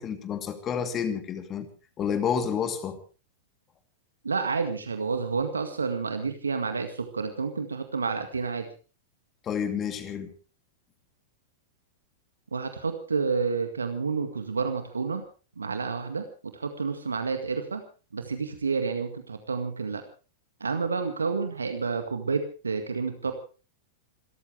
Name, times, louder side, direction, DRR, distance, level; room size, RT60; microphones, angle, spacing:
voice 1, 0.0-1.7 2.0-3.0 9.4-10.3, left 7 dB, 25° left, 2.8 m, -29 dB
voice 2, 4.2-8.7 12.5-15.2 15.6-17.8 18.1-20.0 20.6-23.3, right 4 dB, 75° right, 2.0 m, -29 dB
28.0 x 14.0 x 3.4 m
figure-of-eight pair, 95°, 0 cm